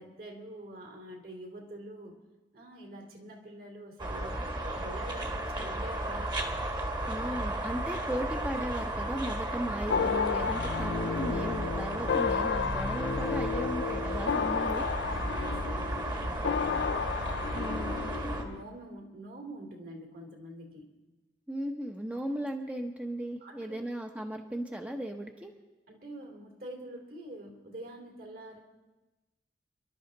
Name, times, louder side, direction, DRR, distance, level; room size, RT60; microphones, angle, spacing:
voice 1, 0.0-2.2 2.5-6.6 15.2-17.2 17.9-21.0 23.4-23.8 25.9-28.6, right 1 dB, 55° right, 2 dB, 2.8 m, -46 dB
sound 1, 4.0-18.4, right 1 dB, 25° right, 1.5 m, -34 dB
voice 2, 7.1-14.9 17.5-18.1 21.5-25.5, right 1 dB, 10° right, 3 dB, 0.8 m, -36 dB
sound 2, 9.9-18.6, left 6 dB, 75° left, 0.4 m, -32 dB
29.5 x 11.5 x 3.9 m, 1.1 s
head